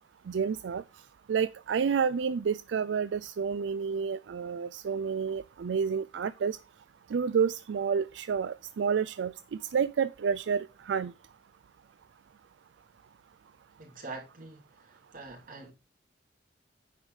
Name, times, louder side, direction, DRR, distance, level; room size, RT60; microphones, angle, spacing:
voice 1, 0.3-0.8 1.3-6.6 7.1-9.3 9.7-11.1, right 6 dB, 85° right, 0.4 m, -29 dB
voice 2, 13.8-15.7, right 3 dB, 50° right, 3.2 m, -45 dB
9.3 x 4.8 x 5.0 m
head